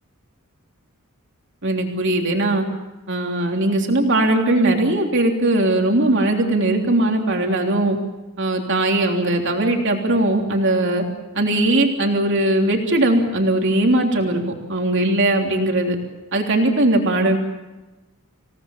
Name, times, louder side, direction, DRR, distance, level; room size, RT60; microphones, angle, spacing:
voice 1, 1.6-2.6 3.1-8.0 8.4-11.0 11.3-14.4 14.7-16.0 16.3-17.4, right 1 dB, 55° right, 2 dB, 3.3 m, -19 dB
27.0 x 18.0 x 7.4 m, 1.1 s
head